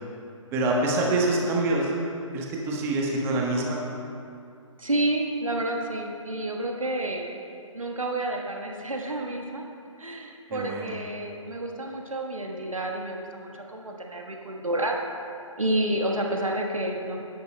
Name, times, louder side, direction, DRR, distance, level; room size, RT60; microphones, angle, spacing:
voice 1, 0.5-1.9 2.3-3.8 10.5-10.9, right 2 dB, 15° right, -1 dB, 1.2 m, -25 dB
voice 2, 4.8-7.3 7.7-9.7 10.0-15.0 15.6-17.2, right 1 dB, 80° right, 1 dB, 1.3 m, -29 dB
16.5 x 11.0 x 2.2 m, 2.5 s
figure-of-eight pair, 135°, 17 cm